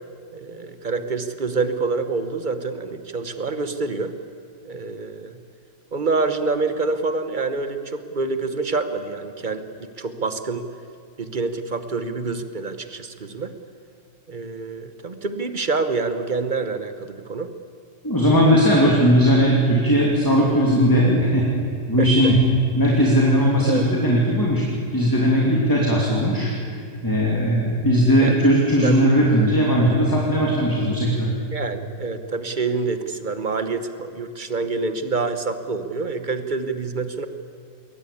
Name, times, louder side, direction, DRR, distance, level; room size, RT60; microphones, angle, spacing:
voice 1, 0.3-4.1 4.6-5.4 5.9-10.6 11.2-13.5 14.3-17.5 18.3-18.5 22.0-22.1 23.6-23.8 28.2-28.4 28.8-28.9 31.5-37.3, right 3 dB, 35° right, 9 dB, 0.8 m, -27 dB
voice 2, 18.0-21.5 21.9-22.4 22.7-24.6 24.9-26.5 27.0-31.3, equal, 10° left, -3 dB, 2.7 m, -18 dB
21.0 x 19.0 x 8.5 m, 2.3 s
omnidirectional pair, 2.0 m